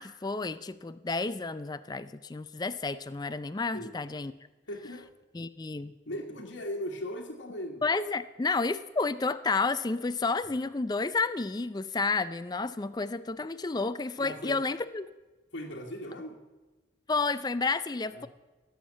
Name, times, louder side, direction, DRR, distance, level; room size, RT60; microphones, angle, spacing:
voice 1, 0.0-4.3 5.3-5.9 7.8-15.1 17.1-18.3, left 3 dB, 20° left, 13 dB, 0.4 m, -31 dB
voice 2, 4.7-5.1 6.0-7.8 14.2-14.6 15.5-16.4 18.1-18.3, left 1 dB, 70° left, -1 dB, 1.3 m, -38 dB
16.5 x 7.3 x 8.4 m, 1.2 s
head